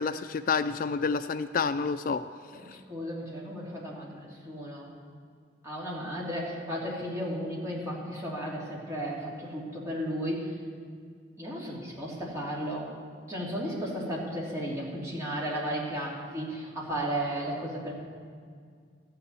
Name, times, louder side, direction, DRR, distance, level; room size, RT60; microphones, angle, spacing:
voice 1, 0.0-2.2 2.7-2.8, left 5 dB, 50° left, 11 dB, 0.3 m, -29 dB
voice 2, 2.5-4.9 5.6-10.5 11.4-12.9 13.3-17.9, equal, 15° right, -5 dB, 3.2 m, -34 dB
14.0 x 6.9 x 9.3 m, 2.1 s
head